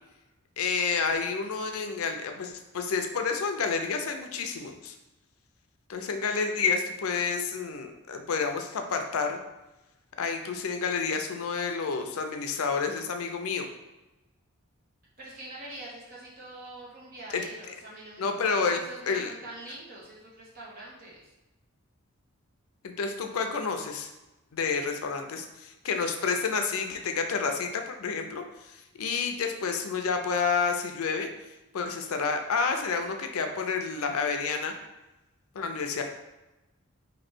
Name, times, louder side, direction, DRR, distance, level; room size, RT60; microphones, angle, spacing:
voice 1, 0.6-4.9 5.9-9.4 10.2-13.6 17.3-17.4 18.2-19.3 22.8-24.1 24.5-31.3 31.7-34.7 35.5-36.0, left 5 dB, 80° left, 5 dB, 0.5 m, -29 dB
voice 2, 15.2-18.2 18.7-21.3, right 1 dB, 40° right, -6 dB, 1.1 m, -44 dB
3.1 x 2.6 x 4.4 m, 1.0 s
head